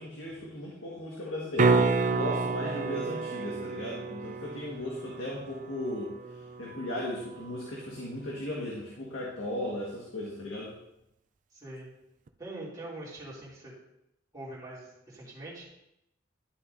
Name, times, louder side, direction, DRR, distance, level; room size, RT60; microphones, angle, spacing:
voice 1, 0.0-6.1 6.6-10.7, left 1 dB, 85° left, -4 dB, 1.6 m, -36 dB
sound 1, 1.6-7.6 12.3-12.4, right 4 dB, 40° right, 0.4 m, -30 dB
voice 2, 11.5-11.9 12.4-13.7 14.3-15.6, right 1 dB, 20° right, -7 dB, 2.8 m, -43 dB
11.5 x 6.4 x 2.7 m, 0.83 s
head